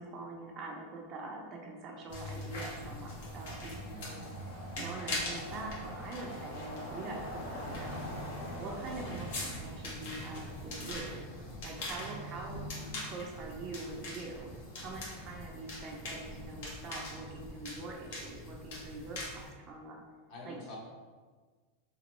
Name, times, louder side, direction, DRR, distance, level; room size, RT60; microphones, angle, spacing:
voice 1, 0.0-4.2 4.8-8.1 8.5-11.2 11.6-12.6 13.0-14.5 14.8-20.0 20.4-20.8, right 3 dB, 30° right, 0 dB, 0.5 m, -44 dB
sound 1, 2.1-19.5, left 1 dB, 75° left, 1.2 m, -41 dB
voice 2, 3.9-4.4 12.6-13.1 20.3-20.8, left 2 dB, 45° left, -4 dB, 1.1 m, -49 dB
3.4 x 2.9 x 3.0 m, 1.5 s
supercardioid pair, 160°, 0 cm